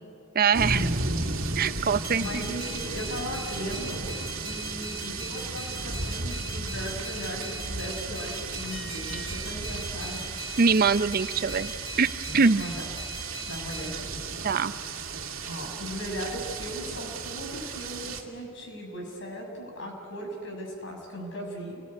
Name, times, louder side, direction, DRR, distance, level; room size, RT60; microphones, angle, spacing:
voice 1, 0.3-0.9 1.6-2.4 10.6-11.7 12.0-12.6 14.4-14.7, right 5 dB, 45° right, 13 dB, 0.6 m, -23 dB
sound 1, 0.5-18.2, right 3 dB, 70° right, 2.3 m, -34 dB
sound 2, 2.0-13.9, equal, 25° left, 5.9 m, -41 dB
voice 2, 2.1-4.1 4.4-10.3 12.3-12.8 13.5-14.3 15.5-21.8, equal, 60° left, 1 dB, 6.0 m, -37 dB
29.0 x 20.5 x 9.8 m, 2.6 s
head